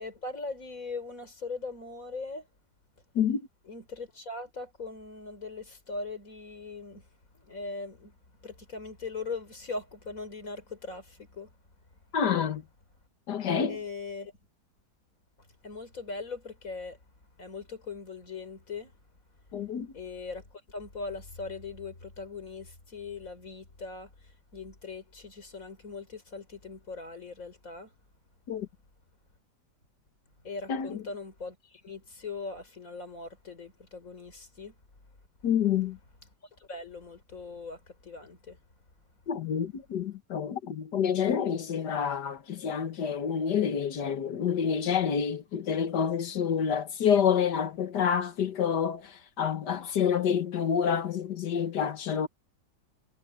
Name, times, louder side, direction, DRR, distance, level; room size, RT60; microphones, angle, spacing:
voice 1, 0.0-2.5 3.7-7.0 7.3-8.2 8.4-11.5 13.7-14.3 15.6-17.0 17.4-18.9 19.9-24.1 24.5-27.9 30.4-34.7 36.6-38.6, left 3 dB, 55° left, 4.2 m, -40 dB
voice 2, 12.1-12.6 13.3-13.8 19.5-19.9 28.5-28.7 30.7-31.0 35.4-36.0 39.3-49.1 49.4-52.3, left 7 dB, 85° left, 1.9 m, -28 dB
omnidirectional pair, 1.7 m